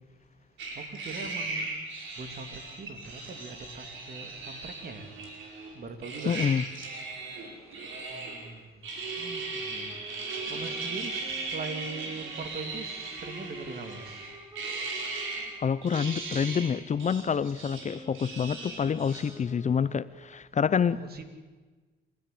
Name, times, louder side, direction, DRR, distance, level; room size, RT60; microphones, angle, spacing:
sound 1, 0.6-5.7 6.0-8.5 8.8-15.5 15.8-16.7 17.0-19.4, right 3 dB, 80° right, 5.1 m, -38 dB
voice 1, 0.7-1.7 2.2-5.1 5.7-6.6 7.5-7.6 8.1-8.8 9.2-10.1 10.5-14.3 20.9-21.3, right 4 dB, 50° right, 6 dB, 3.1 m, -41 dB
voice 2, 6.3-6.6 15.6-21.0, left 7 dB, 35° left, 17 dB, 0.6 m, -27 dB
sound 2, 9.9-20.3, right 1 dB, 20° right, 3.9 m, -49 dB
28.0 x 13.5 x 8.6 m, 1.3 s
cardioid pair, 90°, 20 cm